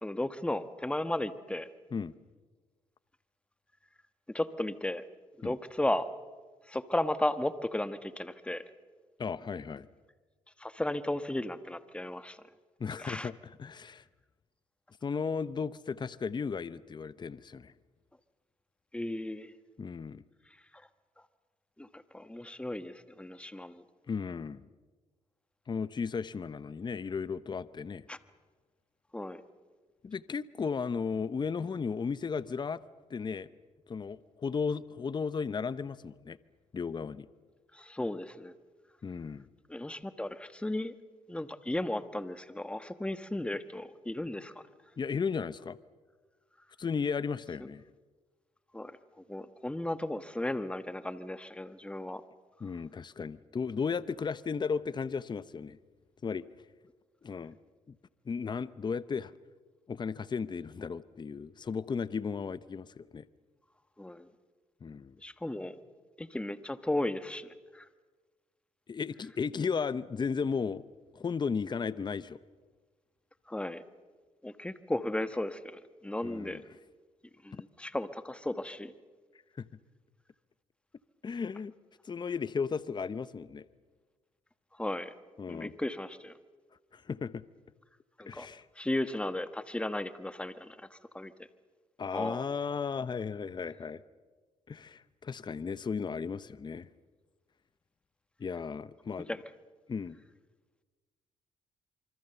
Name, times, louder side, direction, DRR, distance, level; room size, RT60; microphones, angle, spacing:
voice 1, 0.0-1.7 4.3-5.0 5.4-6.1 6.7-8.6 10.6-12.4 13.0-13.3 18.9-19.5 21.8-23.8 28.1-28.2 29.1-29.4 37.7-38.5 39.7-40.9 41.3-44.6 48.7-49.0 49.3-52.2 64.0-64.3 65.2-65.8 66.2-67.9 73.5-73.8 74.4-76.6 77.4-78.9 84.8-85.1 85.5-86.3 88.2-88.5 88.8-91.3 92.1-92.4 99.3-99.4, left 1 dB, 10° left, 11 dB, 1.3 m, -35 dB
voice 2, 9.2-9.9 12.8-14.0 15.0-17.7 19.8-20.2 24.1-24.7 25.7-28.0 30.0-32.8 33.1-33.5 33.9-36.4 36.7-37.3 39.0-39.5 45.0-45.8 46.8-47.8 52.6-55.8 56.2-56.5 57.2-57.6 57.9-58.0 58.3-59.3 59.9-63.3 64.8-65.2 68.9-70.9 71.1-72.4 76.2-76.6 77.5-77.6 79.6-79.7 81.2-81.7 82.0-83.6 85.4-85.7 86.9-87.4 88.3-88.7 92.0-94.0 94.7-96.9 98.4-99.3 99.9-100.2, left 5 dB, 35° left, 16 dB, 0.8 m, -35 dB
26.5 x 24.5 x 6.9 m, 1.4 s
supercardioid pair, 70°, 13 cm